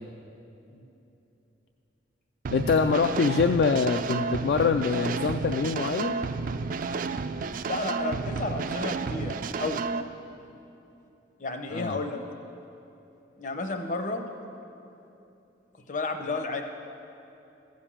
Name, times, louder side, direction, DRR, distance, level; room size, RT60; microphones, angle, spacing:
sound 1, 2.4-10.0, right 4 dB, 45° right, 0.3 m, -31 dB
voice 1, 2.5-6.2 11.7-12.0, left 5 dB, 60° left, 6 dB, 0.3 m, -24 dB
voice 2, 7.7-9.8 11.4-12.2 13.4-14.2 15.9-16.6, left 3 dB, 45° left, 5 dB, 0.8 m, -32 dB
14.5 x 5.2 x 7.2 m, 2.9 s
head